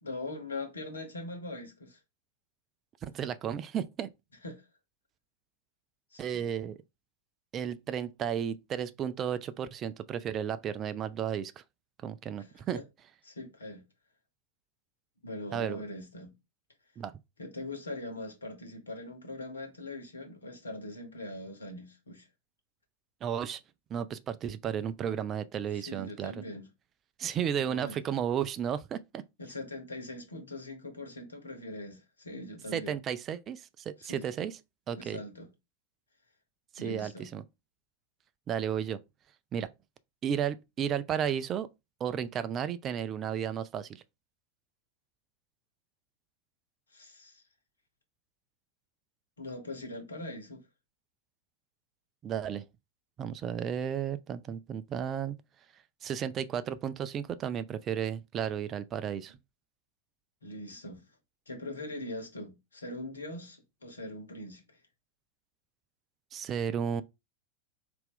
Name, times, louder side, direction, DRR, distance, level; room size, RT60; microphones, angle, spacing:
voice 1, 0.0-2.0 4.4-4.6 6.1-6.5 12.4-12.8 13.2-13.8 15.2-16.3 17.4-22.3 25.7-26.7 27.5-28.0 29.4-33.0 34.0-34.3 35.0-35.5 36.8-37.3 46.9-47.4 49.4-50.6 60.4-61.1 61.5-64.8, left 2 dB, 75° left, 1.1 m, -42 dB
voice 2, 3.0-4.1 6.2-6.8 7.5-11.6 12.0-12.8 15.5-15.8 17.0-17.1 23.2-23.6 23.9-26.3 27.2-29.2 32.7-34.5 34.9-35.2 36.8-37.4 38.5-39.0 39.5-39.7 40.2-41.7 42.0-44.0 52.2-52.6 53.2-55.4 56.0-59.4 66.3-67.0, right 8 dB, 30° right, 0.3 m, -33 dB
4.1 x 2.5 x 3.6 m
figure-of-eight pair, 90°, 0 cm